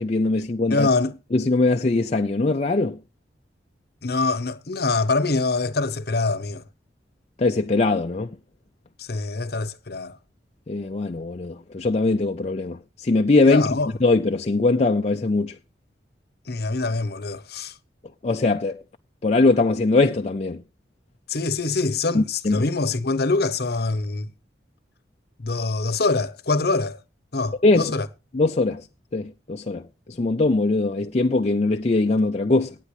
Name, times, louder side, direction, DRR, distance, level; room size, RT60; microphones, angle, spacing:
voice 1, 0.0-0.9 1.3-3.0 7.4-8.3 10.7-13.7 14.0-15.6 18.2-18.8 19.2-20.6 22.1-22.6 27.6-27.9 28.3-28.9 29.1-32.8, left 3 dB, 35° left, 0.5 m, -21 dB
voice 2, 0.7-1.1 4.0-6.6 9.0-10.2 13.5-13.9 16.5-17.7 21.3-24.3 25.4-27.0 27.3-28.1, left 3 dB, 55° left, 0.9 m, -24 dB
18.0 x 9.3 x 3.1 m
head